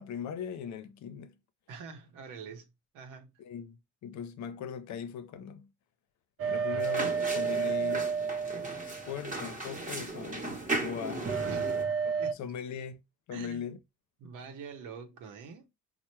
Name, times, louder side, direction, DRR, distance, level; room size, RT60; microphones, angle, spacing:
voice 1, 0.0-1.3 3.4-5.7 6.5-8.1 9.0-11.3 12.0-13.0 13.3-13.8, left 7 dB, 70° left, 0.6 m, -40 dB
voice 2, 1.7-2.7 2.9-3.3 11.4-11.9 12.2-12.4 13.3-13.7 14.2-15.7, right 5 dB, 90° right, 0.8 m, -45 dB
sound 1, 6.4-9.4 11.3-12.3, right 6 dB, 50° right, 0.6 m, -31 dB
sound 2, 6.8-11.8, right 2 dB, 25° right, 0.9 m, -37 dB
4.4 x 2.1 x 3.0 m
cardioid pair, 90°, 30 cm